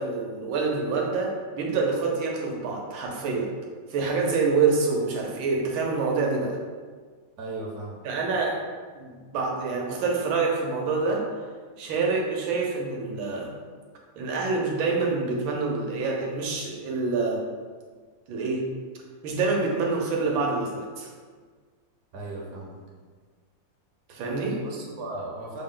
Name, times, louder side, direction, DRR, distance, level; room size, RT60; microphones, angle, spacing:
voice 1, 0.0-3.5 3.9-6.6 8.0-8.6 8.9-11.3 11.8-13.5 14.2-17.4 18.3-18.7 19.2-21.1 24.1-24.6, right 4 dB, 80° right, -1 dB, 1.5 m, -26 dB
voice 2, 7.4-8.0 22.1-22.8 24.6-25.6, right 2 dB, 60° right, -3 dB, 1.1 m, -36 dB
6.2 x 2.1 x 3.7 m, 1.5 s
omnidirectional pair, 2.1 m